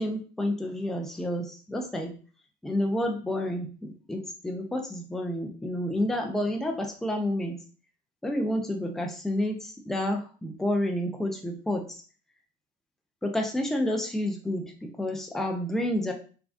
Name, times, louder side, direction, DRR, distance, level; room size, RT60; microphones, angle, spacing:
voice 1, 0.0-2.1 2.6-7.6 8.2-12.0 13.2-16.1, left 1 dB, ahead, 2 dB, 0.4 m, -29 dB
3.4 x 2.2 x 2.5 m, 0.38 s
cardioid pair, 130°, 18 cm